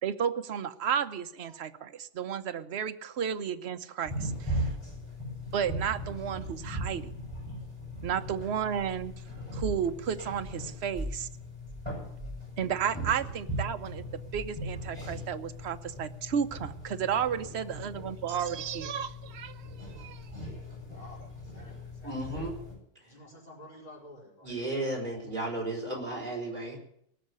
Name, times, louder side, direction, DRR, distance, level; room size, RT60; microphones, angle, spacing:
voice 1, 0.0-4.7 5.5-7.1 8.0-9.1 9.5-11.3 12.6-14.1 14.3-20.3, right 8 dB, 60° right, 9 dB, 1.1 m, -33 dB
sound 1, 4.0-22.7, equal, 20° right, 7.4 m, -39 dB
voice 2, 20.9-22.3 23.0-24.5, left 1 dB, 35° left, -9 dB, 5.2 m, -51 dB
voice 3, 22.0-22.5 24.4-26.8, right 2 dB, 40° right, -1 dB, 4.8 m, -34 dB
19.0 x 6.6 x 9.6 m, 0.72 s
omnidirectional pair, 1.3 m